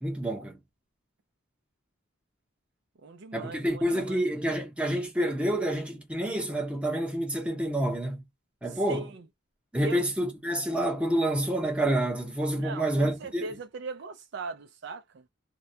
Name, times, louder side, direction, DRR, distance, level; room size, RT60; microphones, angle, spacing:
voice 1, 0.0-0.6 3.3-8.2 8.6-9.1 9.7-13.5, right 1 dB, 5° right, 0.7 m, -28 dB
voice 2, 3.0-4.5 8.7-9.3 9.8-10.0 12.5-15.2, right 3 dB, 55° right, 0.4 m, -40 dB
2.3 x 2.1 x 2.6 m
head